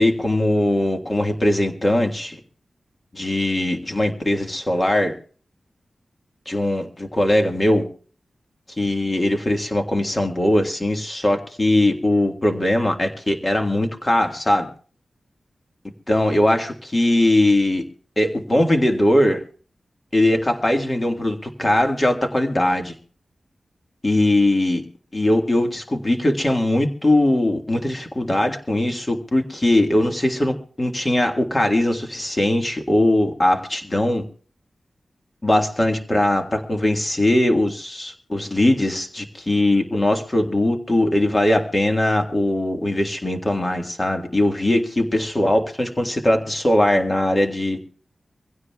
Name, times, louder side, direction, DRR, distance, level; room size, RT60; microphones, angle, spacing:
voice 1, 0.0-2.4 3.1-5.1 6.4-7.8 8.8-14.7 16.1-17.8 18.2-19.4 20.1-22.9 24.0-24.8 25.1-34.2 35.4-47.8, left 1 dB, 25° left, 3 dB, 1.7 m, -20 dB
24.5 x 16.0 x 2.4 m, 0.40 s
wide cardioid pair, 135°, 0 cm